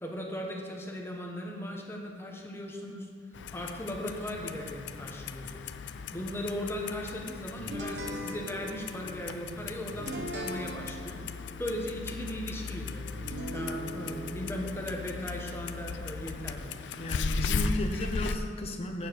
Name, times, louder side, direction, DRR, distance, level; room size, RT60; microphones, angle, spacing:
voice 1, 0.0-3.1 3.5-11.2 11.6-16.8, equal, 15° left, 0 dB, 1.1 m, -38 dB
Clock, 3.3-18.4, left 5 dB, 85° left, 0.4 m, -37 dB
sound 1, 7.6-18.2, equal, 75° right, 1.1 m, -42 dB
voice 2, 17.0-19.1, left 1 dB, 35° left, 4 dB, 0.8 m, -34 dB
7.2 x 7.2 x 6.2 m, 2.1 s
head